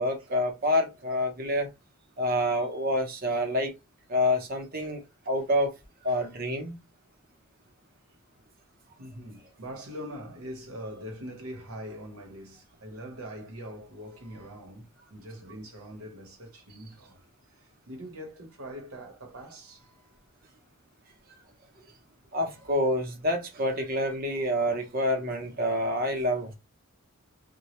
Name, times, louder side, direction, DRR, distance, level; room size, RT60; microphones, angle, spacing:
voice 1, 0.0-1.7 2.2-3.7 4.1-5.7 6.0-6.8 22.3-26.5, left 1 dB, 45° right, 0.7 m, -27 dB
voice 2, 9.0-17.2 17.6-20.2 22.5-22.7, equal, 90° right, 0.9 m, -43 dB
2.2 x 2.1 x 2.8 m
head